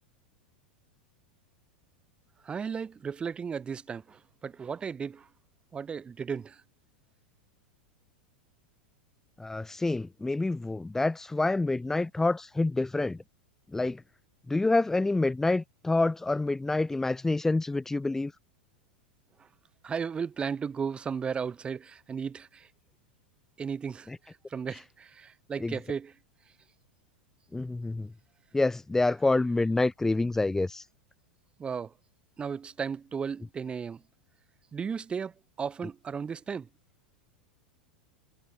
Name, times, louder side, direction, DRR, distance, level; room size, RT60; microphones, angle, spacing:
voice 1, 2.4-5.3 5.7-6.6 19.8-22.7 23.6-24.1 24.5-26.1 31.6-31.9 32.4-34.0 34.7-35.3 35.6-36.7, right 6 dB, 20° right, 7.2 m, -35 dB
voice 2, 9.4-13.2 13.7-14.0 14.5-18.3 24.1-24.2 25.6-25.7 27.5-28.1 28.5-30.8, left 2 dB, 10° left, 5.6 m, -27 dB
figure-of-eight pair, 90°, 5 cm